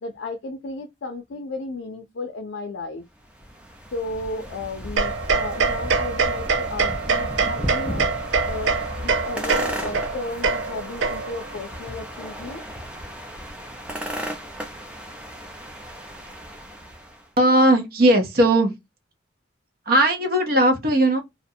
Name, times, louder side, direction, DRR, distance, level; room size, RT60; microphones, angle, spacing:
voice 1, 0.0-3.0 3.9-8.1 8.4-12.6, left 2 dB, 75° left, 0.4 m, -34 dB
sound 1, 3.2-17.2, equal, 5° right, 0.5 m, -35 dB
sound 2, 5.0-11.5, right 4 dB, 85° right, 0.5 m, -24 dB
voice 2, 17.4-18.7 19.9-21.2, right 1 dB, 50° right, 0.8 m, -18 dB
2.4 x 2.2 x 2.6 m
head